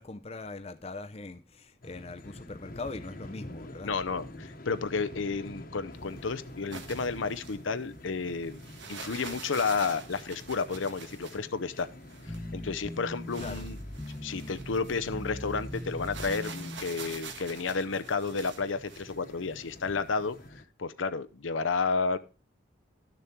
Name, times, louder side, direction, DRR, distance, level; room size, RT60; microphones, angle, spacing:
voice 1, 0.0-3.9 13.4-13.6, left 3 dB, 30° left, 0.6 m, -41 dB
sound 1, 1.8-20.6, left 1 dB, 50° left, 1.2 m, -48 dB
voice 2, 3.8-8.6 8.9-11.9 12.5-13.8 14.2-20.4 20.8-22.2, left 4 dB, 80° left, 0.7 m, -31 dB
sound 2, 5.9-20.5, right 5 dB, 70° right, 1.6 m, -47 dB
sound 3, 12.3-16.8, left 1 dB, 10° left, 0.9 m, -40 dB
12.0 x 6.9 x 4.5 m
head